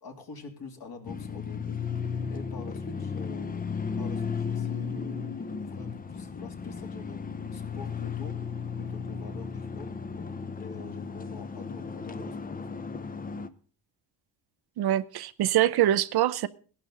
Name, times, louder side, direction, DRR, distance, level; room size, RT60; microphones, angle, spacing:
voice 1, 0.0-1.8 2.3-7.2 7.5-8.4 8.8-9.9 10.6-12.8, left 4 dB, 55° left, 2.9 m, -45 dB
sound 1, 1.0-13.5, left 6 dB, 20° left, 0.6 m, -35 dB
voice 2, 14.8-16.5, right 13 dB, 60° right, 0.6 m, -24 dB
17.0 x 11.5 x 3.9 m
cardioid pair, 115°, 43 cm